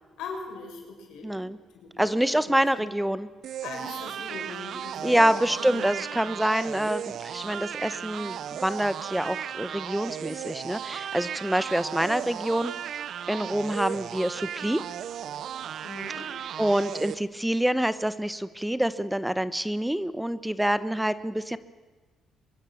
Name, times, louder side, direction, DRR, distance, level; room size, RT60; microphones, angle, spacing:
voice 1, 0.2-1.4 1.8-2.9 3.6-5.2 5.6-5.9 15.8-16.3, left 4 dB, 90° left, 2 dB, 5.9 m, -41 dB
voice 2, 1.2-1.6 2.0-3.3 5.0-12.7 13.3-14.8 16.6-21.6, right 1 dB, 5° right, 14 dB, 1.0 m, -26 dB
sound 1, 3.4-17.1, right 9 dB, 70° right, 0.8 m, -35 dB
23.0 x 23.0 x 7.2 m, 1.3 s
cardioid pair, 90°, 0 cm